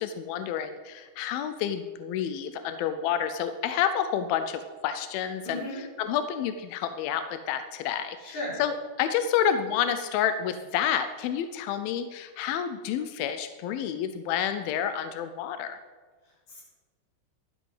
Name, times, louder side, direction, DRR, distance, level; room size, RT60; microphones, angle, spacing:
voice 1, 0.0-5.6 6.0-15.8, left 9 dB, 85° left, 10 dB, 2.1 m, -29 dB
voice 2, 5.4-5.8 8.2-8.6 16.2-16.6, left 1 dB, 45° left, -6 dB, 5.7 m, -36 dB
11.5 x 10.5 x 5.5 m, 1.4 s
omnidirectional pair, 5.0 m